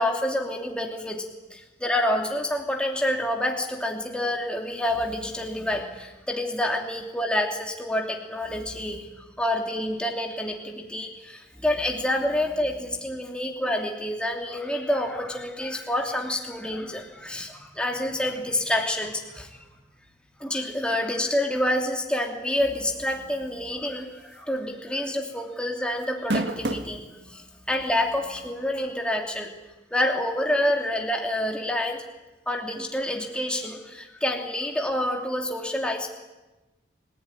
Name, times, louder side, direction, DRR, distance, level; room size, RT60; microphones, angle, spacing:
voice 1, 0.0-19.7 20.4-29.5 29.9-32.0 32.5-36.1, left 1 dB, 5° left, 2 dB, 2.8 m, -28 dB
sound 1, 24.3-24.6 24.9-25.0 26.0-27.0 27.7-27.8 29.4-29.5, right 1 dB, 80° right, 1.7 m, -28 dB
29.5 x 15.5 x 9.9 m, 1.1 s
head